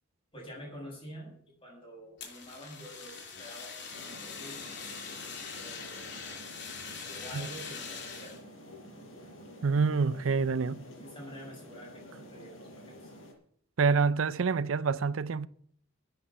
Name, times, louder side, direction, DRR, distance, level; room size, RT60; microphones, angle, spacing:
voice 1, 0.3-1.3 1.6-5.0 5.5-6.1 7.1-8.4 10.9-13.1, equal, 25° left, 7.5 m, -47 dB
Fire, 2.2-8.4, left 5 dB, 60° left, 3.0 m, -43 dB
sound 1, 3.9-13.3, equal, 85° left, 5.6 m, -49 dB
voice 2, 9.6-10.8 13.8-15.5, right 5 dB, 90° right, 0.6 m, -27 dB
11.0 x 9.2 x 8.4 m
head